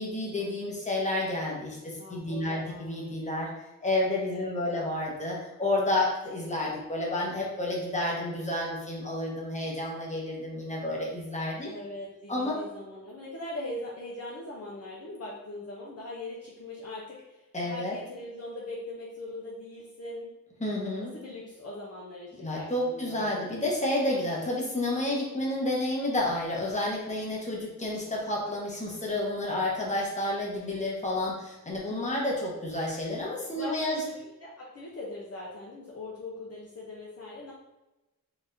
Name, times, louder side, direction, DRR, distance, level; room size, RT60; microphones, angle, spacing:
voice 1, 0.0-3.5 3.8-11.7 12.3-12.6 17.5-18.0 20.6-21.1 22.4-34.0, left 1 dB, 20° left, -3 dB, 1.0 m, -30 dB
voice 2, 2.0-3.2 4.3-4.8 11.6-20.3 21.0-23.5 33.5-37.5, left 2 dB, 50° left, -4 dB, 0.7 m, -41 dB
4.0 x 3.4 x 2.6 m, 1.0 s
wide cardioid pair, 130°, 33 cm